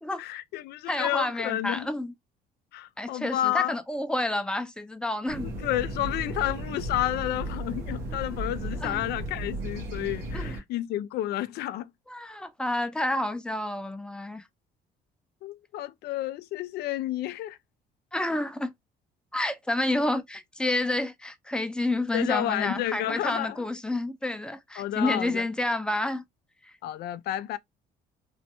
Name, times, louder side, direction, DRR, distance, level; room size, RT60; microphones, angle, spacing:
voice 1, 0.2-1.9 2.7-3.7 5.4-11.9 15.4-17.6 22.1-23.7 24.8-25.5 26.8-27.6, left 14 dB, 70° left, 0.4 m, -30 dB
voice 2, 0.9-2.1 3.0-5.5 8.8-9.0 10.3-10.6 12.1-14.4 18.1-18.7 19.3-26.2, left 1 dB, 5° left, 0.5 m, -29 dB
sound 1, 5.3-10.6, right 1 dB, 90° right, 1.0 m, -35 dB
3.1 x 2.1 x 2.9 m
cardioid pair, 110°, 17 cm